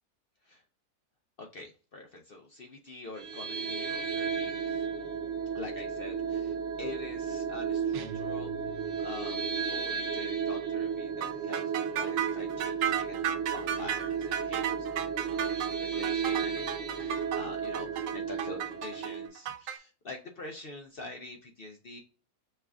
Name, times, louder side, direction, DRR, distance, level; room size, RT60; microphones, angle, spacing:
voice 1, 1.4-4.9 5.5-8.5 9.0-22.0, left 2 dB, 55° left, 2 dB, 0.6 m, -45 dB
sound 1, 3.2-19.3, right 6 dB, 50° right, 1.2 m, -33 dB
sound 2, 7.9-9.3, right 2 dB, 70° right, 0.9 m, -45 dB
sound 3, 11.2-19.8, right 9 dB, 90° right, 1.2 m, -34 dB
5.5 x 2.4 x 3.4 m, 0.38 s
omnidirectional pair, 1.7 m